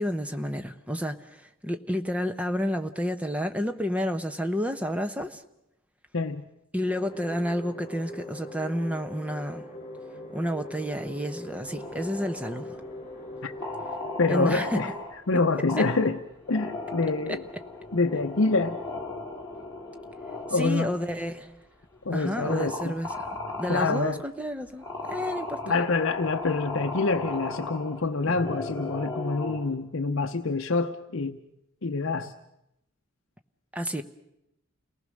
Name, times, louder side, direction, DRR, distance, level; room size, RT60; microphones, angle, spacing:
voice 1, 0.0-5.4 6.7-9.6 10.3-12.8 14.3-14.8 20.5-21.6 22.1-25.7 33.7-34.0, equal, 5° right, 0.8 m, -30 dB
sound 1, 6.9-15.0, equal, 30° left, 5.0 m, -41 dB
sound 2, 11.5-13.0 13.6-15.2 15.7-16.1 16.4-21.4 21.9-22.0 22.5-24.2 24.8-29.7, left 2 dB, 15° left, 3.2 m, -37 dB
voice 2, 14.2-14.9 15.3-16.2 16.5-17.4 17.9-18.8 20.5-20.9 22.0-23.0 23.7-24.2 25.7-31.4 31.8-32.3, left 3 dB, 60° left, 0.8 m, -26 dB
29.0 x 19.0 x 6.4 m
head